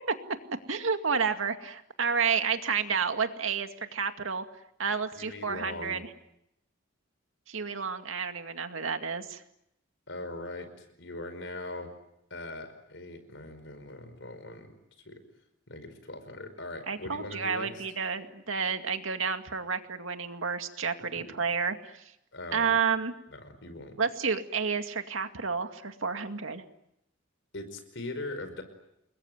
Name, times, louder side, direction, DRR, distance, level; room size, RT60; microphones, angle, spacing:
voice 1, 0.7-4.4 4.8-6.1 7.5-9.4 16.9-22.0 22.5-23.1 24.0-26.6, right 6 dB, 85° right, 7 dB, 2.2 m, -30 dB
voice 2, 5.2-6.0 10.1-10.7 11.0-11.9 12.3-14.7 15.1-15.2 15.7-17.8 21.0-21.4 22.3-22.8 23.3-23.9 27.5-28.6, left 2 dB, 65° left, 9 dB, 5.2 m, -40 dB
29.0 x 21.5 x 9.3 m, 0.82 s
head